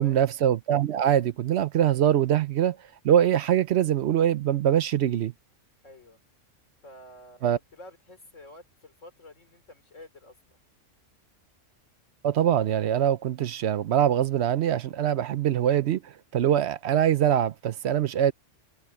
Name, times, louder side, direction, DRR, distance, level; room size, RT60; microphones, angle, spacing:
voice 1, 0.0-2.8 3.0-5.3 7.4-7.6 12.2-18.3, right 10 dB, 65° right, 0.8 m, -23 dB
voice 2, 5.8-6.2 6.8-10.6, left 1 dB, 85° left, 3.9 m, -49 dB
omnidirectional pair, 1.3 m